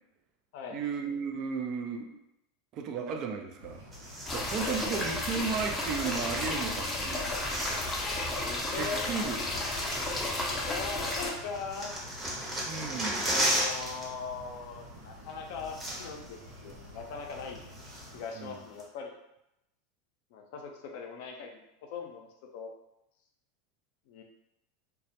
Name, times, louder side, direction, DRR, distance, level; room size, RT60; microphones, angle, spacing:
voice 1, 0.7-2.2 2.7-3.8 4.3-7.4 8.7-9.4 12.6-13.3 18.4-18.5, right 5 dB, 50° right, 4 dB, 0.4 m, -34 dB
sound 1, 3.6-18.2, equal, 90° right, 0.7 m, -49 dB
sound 2, 3.9-5.0 5.8-6.8 7.1-8.3 9.2-9.3 9.6-10.8 11.1-14.1 14.3-14.5 15.3-15.4 15.6-16.3 16.7-16.8 17.3-18.3 18.8-18.9, right 1 dB, 20° right, 0.8 m, -35 dB
sound 3, 4.3-11.3, left 2 dB, 20° left, 0.5 m, -33 dB
voice 2, 4.6-5.1 8.3-9.6 10.3-11.9 13.2-17.6 18.1-19.2 20.3-22.7 24.1-24.2, left 5 dB, 65° left, 2 dB, 0.5 m, -40 dB
2.2 x 2.0 x 2.7 m, 0.85 s
hypercardioid pair, 105°, 0 cm